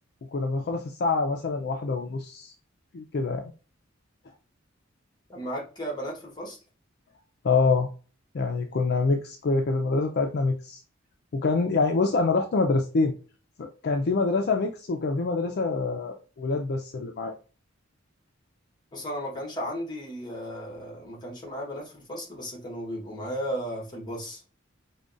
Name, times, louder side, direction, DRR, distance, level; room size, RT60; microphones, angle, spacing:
voice 1, 0.3-2.5 2.9-3.5 7.4-7.9 8.3-10.8 11.3-13.1 13.6-17.3, left 3 dB, 55° left, 0.4 m, -26 dB
voice 2, 5.3-6.6 18.9-24.4, equal, 20° left, 1.2 m, -35 dB
4.9 x 2.2 x 2.5 m
head